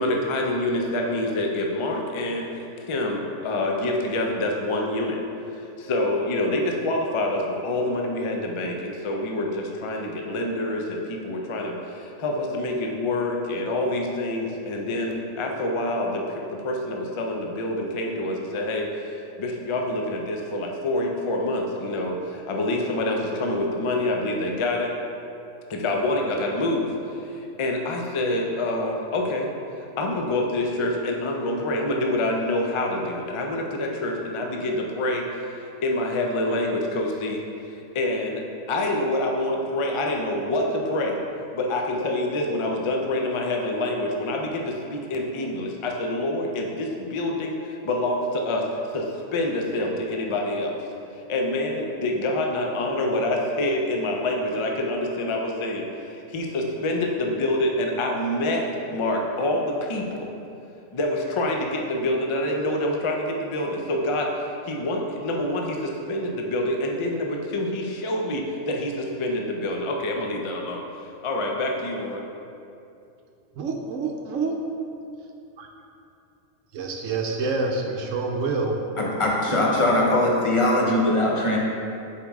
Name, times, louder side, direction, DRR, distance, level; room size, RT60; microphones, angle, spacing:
voice 1, 0.0-2.5 2.8-5.2 5.5-24.9 25.7-38.4 38.7-41.2 41.5-50.8 51.1-60.3 60.9-72.2, left 1 dB, 55° left, 1 dB, 0.3 m, -27 dB
voice 2, 73.6-74.5 75.6-75.7 76.7-78.7, right 3 dB, 70° right, 2 dB, 1.0 m, -27 dB
voice 3, 79.0-81.6, left 1 dB, 30° left, -3 dB, 0.7 m, -21 dB
7.0 x 4.7 x 3.6 m, 2.7 s
omnidirectional pair, 1.5 m